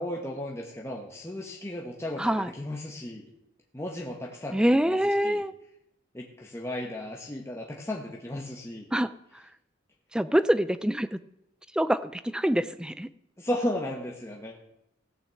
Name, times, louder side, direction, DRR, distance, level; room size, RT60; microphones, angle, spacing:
voice 1, 0.0-3.3 3.7-5.0 5.2-5.4 6.1-8.9 13.4-14.6, left 1 dB, 15° left, -1 dB, 1.3 m, -35 dB
voice 2, 2.2-2.5 4.5-5.5 8.9-9.1 10.1-11.2 11.7-13.1, equal, 5° right, 14 dB, 0.4 m, -25 dB
16.5 x 6.3 x 7.7 m, 0.82 s
head